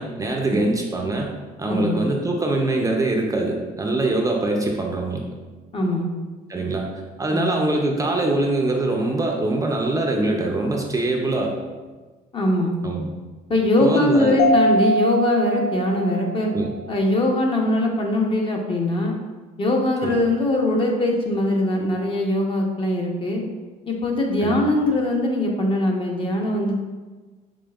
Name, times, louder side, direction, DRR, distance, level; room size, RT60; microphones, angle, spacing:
voice 1, 0.0-1.3 1.6-5.2 6.5-6.9 7.2-11.5 12.8-13.1 13.8-14.4 16.5-16.7 20.0-20.1 24.4-24.6, right 2 dB, 20° right, 0 dB, 0.5 m, -23 dB
voice 2, 1.6-2.0 5.7-6.1 7.3-7.5 12.3-12.7 13.5-16.5 16.9-19.2 19.6-23.4 23.9-26.7, left 1 dB, 30° left, 1 dB, 0.7 m, -21 dB
Mallet percussion, 14.4-16.9, equal, 80° left, 0.4 m, -23 dB
5.1 x 3.4 x 2.3 m, 1.3 s
cardioid pair, 110°, 17 cm